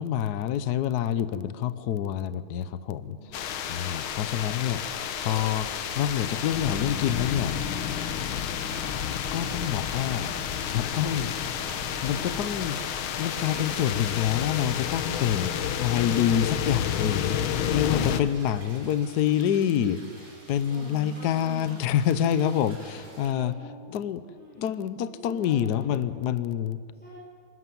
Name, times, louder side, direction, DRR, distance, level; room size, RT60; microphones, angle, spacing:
voice 1, 0.0-3.2 3.7-5.7 6.0-7.5 9.3-10.4 10.7-11.3 12.0-12.8 13.2-23.5 23.9-24.2 24.6-26.8, left 10 dB, 65° left, 14 dB, 1.1 m, -27 dB
sound 1, 3.3-18.2, left 9 dB, 85° left, 1.8 m, -30 dB
sound 2, 3.3-12.9, equal, 20° left, 5.5 m, -44 dB
sound 3, 4.9-23.3, right 2 dB, 75° right, 6.8 m, -48 dB
voice 2, 20.7-21.8 23.3-24.0 24.3-24.8 25.1-25.9 26.9-27.1, left 3 dB, 5° left, -7 dB, 5.4 m, -44 dB
25.0 x 14.0 x 9.3 m, 2.1 s
omnidirectional pair, 2.2 m